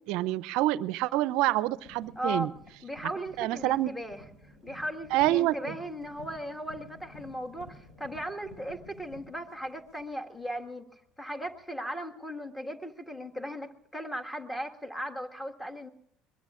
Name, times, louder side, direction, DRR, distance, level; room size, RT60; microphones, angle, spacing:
voice 1, 0.1-2.5 3.4-3.9 5.1-5.7, right 16 dB, 65° right, 19 dB, 0.5 m, -27 dB
sound 1, 1.8-10.6 11.4-11.5, left 2 dB, 45° left, 4.3 m, -52 dB
voice 2, 2.2-2.5 2.8-15.9, equal, 10° left, 6 dB, 1.7 m, -37 dB
22.5 x 21.5 x 2.5 m, 0.72 s
hypercardioid pair, 70°, 0 cm